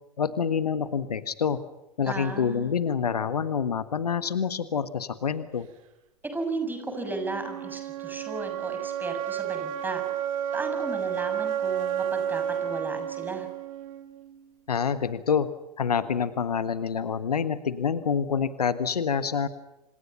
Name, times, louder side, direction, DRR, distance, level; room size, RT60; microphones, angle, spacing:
voice 1, 0.2-1.6 2.0-5.7 14.7-15.5 15.8-19.5, left 6 dB, 75° left, 14 dB, 1.5 m, -27 dB
voice 2, 2.1-2.8 6.2-10.0 10.5-13.5, right 2 dB, 10° right, 6 dB, 6.8 m, -35 dB
sound 1, 6.5-14.5, right 9 dB, 55° right, 3.7 m, -32 dB
28.0 x 28.0 x 5.6 m, 0.94 s
figure-of-eight pair, 90°, 20 cm